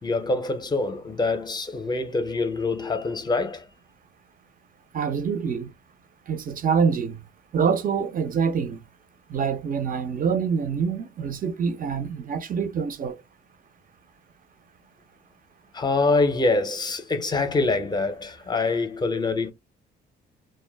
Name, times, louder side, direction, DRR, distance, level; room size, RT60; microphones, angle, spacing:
voice 1, 0.0-3.7 15.7-19.5, left 3 dB, 20° left, 0.6 m, -25 dB
voice 2, 4.9-5.7 6.3-7.2 7.5-8.8 9.3-13.2, right 6 dB, 45° right, 0.6 m, -25 dB
2.2 x 2.0 x 3.2 m
cardioid pair, 90°, 20 cm